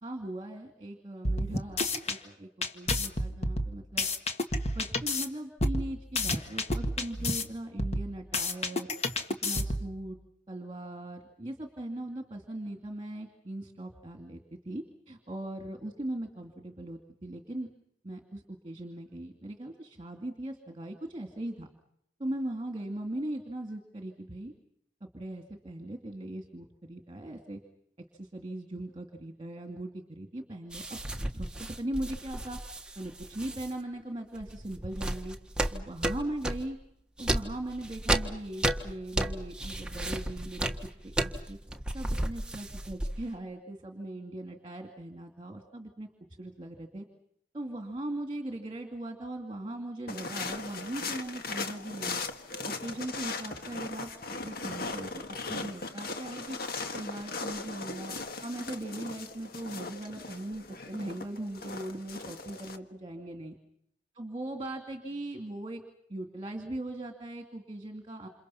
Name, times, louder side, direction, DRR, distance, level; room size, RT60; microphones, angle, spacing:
voice 1, 0.0-4.1 4.7-8.9 9.4-10.2 10.5-17.7 18.0-21.7 22.2-24.5 25.0-27.6 28.1-32.6 33.0-35.4 35.7-36.8 37.2-41.6 41.9-46.1 46.4-47.0 47.5-52.2 52.6-54.1 54.4-56.6 56.9-58.2 58.4-63.5 64.2-65.8 66.1-68.3, right 1 dB, 25° right, 4 dB, 2.4 m, -39 dB
sound 1, 1.2-2.2 2.6-5.3 5.6-7.4 7.8-9.9, left 2 dB, 35° left, 1.7 m, -30 dB
sound 2, 30.7-33.7 34.4-36.7 37.2-43.4, right 1 dB, 5° right, 1.4 m, -33 dB
sound 3, 50.1-62.8, left 3 dB, 55° left, 1.7 m, -38 dB
28.5 x 28.0 x 5.8 m, 0.74 s
head